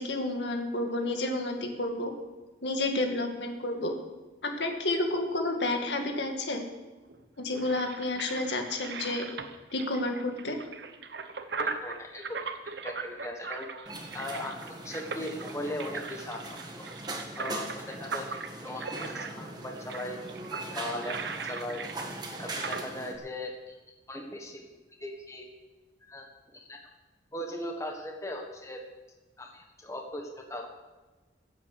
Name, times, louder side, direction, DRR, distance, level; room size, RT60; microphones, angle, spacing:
voice 1, 0.0-2.1 2.6-3.9 4.4-6.6 7.4-9.3 9.7-10.6, left 2 dB, 75° left, 4 dB, 2.0 m, -30 dB
sound 1, 7.0-22.8, right 5 dB, 70° right, 1.0 m, -39 dB
voice 2, 11.6-12.4 12.8-13.7 14.1-16.9 17.4-20.2 20.7-21.8 22.4-23.8 24.1-24.7 25.0-25.5 26.1-26.3 26.5-26.8 27.3-28.8 29.4-30.7, left 1 dB, 15° left, 2 dB, 1.4 m, -38 dB
sound 2, 13.9-23.2, right 2 dB, 25° right, 1.6 m, -40 dB
15.5 x 8.3 x 6.7 m, 1.2 s
head